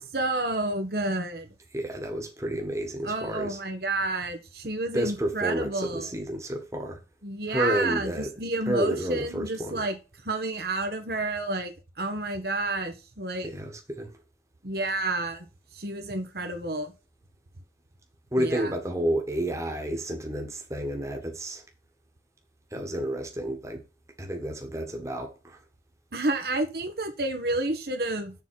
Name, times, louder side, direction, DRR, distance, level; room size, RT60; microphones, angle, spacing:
voice 1, 0.1-1.5 3.0-6.1 7.2-9.9 10.2-13.5 14.6-15.4 15.7-16.9 18.4-18.7 26.1-28.3, right 2 dB, 55° right, 1.4 m, -30 dB
voice 2, 1.7-3.6 4.9-7.0 7.5-8.3 8.7-9.8 13.4-14.1 18.3-21.6 22.7-23.8 24.2-25.6, right 1 dB, 15° right, 1.6 m, -30 dB
7.3 x 4.1 x 5.7 m
head